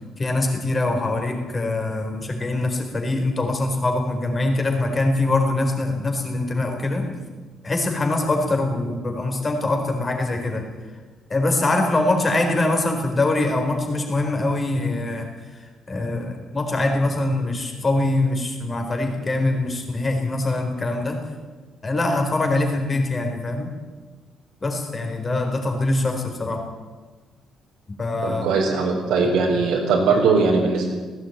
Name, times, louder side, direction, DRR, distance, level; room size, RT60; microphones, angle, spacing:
voice 1, 0.2-7.2 7.6-10.7 11.3-21.2 21.8-23.7 24.6-26.6 28.0-28.5 29.5-29.6, left 2 dB, 20° left, 4 dB, 4.2 m, -23 dB
voice 2, 28.2-30.9, right 4 dB, 90° right, -3 dB, 4.6 m, -20 dB
18.5 x 16.5 x 9.3 m, 1.3 s
cardioid pair, 155°, 0 cm